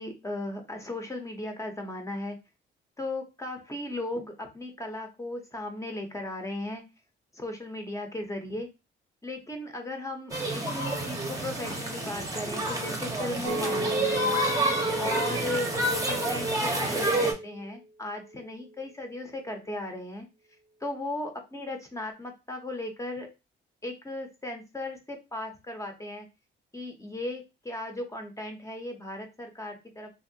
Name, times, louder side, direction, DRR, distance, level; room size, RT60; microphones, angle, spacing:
voice 1, 0.0-2.4 3.0-6.8 7.3-8.7 9.2-14.4 15.0-20.3 20.8-23.3 23.8-26.2 26.7-30.1, left 1 dB, 15° left, 4 dB, 0.9 m, -36 dB
sound 1, 10.3-17.3, right 1 dB, 15° right, 0.9 m, -29 dB
Chink clink, 13.5-17.8 18.3-18.6, right 2 dB, 90° right, 0.7 m, -35 dB
2.8 x 2.8 x 2.7 m, 0.26 s
cardioid pair, 90°, 20 cm